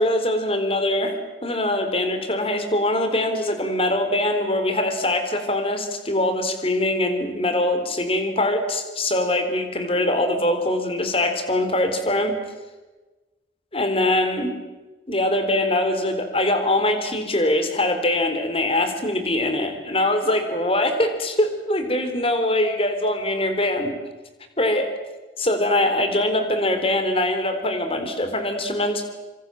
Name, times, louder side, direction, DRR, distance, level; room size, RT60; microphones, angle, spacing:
voice 1, 0.0-12.4 13.7-14.5 15.1-23.9 24.6-24.9 25.4-29.1, left 1 dB, 30° left, 7 dB, 3.8 m, -23 dB
26.5 x 25.0 x 7.7 m, 1.2 s
head